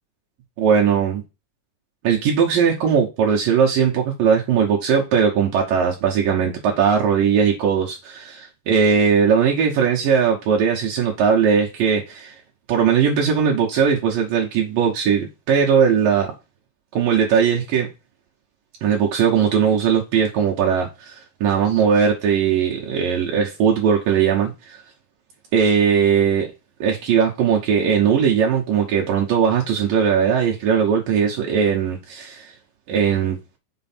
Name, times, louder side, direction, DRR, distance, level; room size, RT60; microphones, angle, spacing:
voice 1, 0.6-1.2 2.0-12.4 12.7-16.3 16.9-17.9 18.8-24.8 25.5-26.5 26.8-32.5 32.9-33.4, right 7 dB, 75° right, 2.0 m, -19 dB
6.8 x 4.5 x 4.3 m
omnidirectional pair, 5.5 m